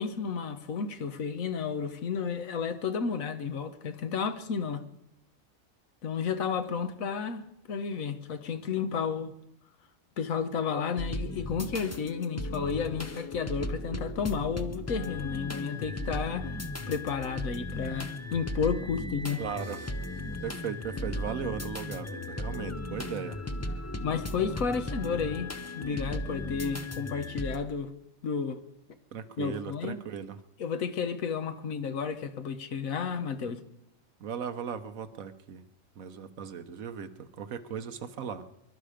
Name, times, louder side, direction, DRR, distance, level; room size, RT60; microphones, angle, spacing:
voice 1, 0.0-4.8 6.0-9.3 10.2-16.6 16.9-19.4 24.0-27.9 28.2-28.6 29.4-30.0 30.6-33.6, left 6 dB, 75° left, 1.4 m, -32 dB
sound 1, 11.0-27.6, left 1 dB, 20° left, 0.4 m, -36 dB
voice 2, 19.4-19.9 20.4-23.4 29.1-30.4 34.2-35.6 36.0-38.4, right 7 dB, 80° right, 1.4 m, -37 dB
24.5 x 11.5 x 5.0 m
omnidirectional pair, 1.4 m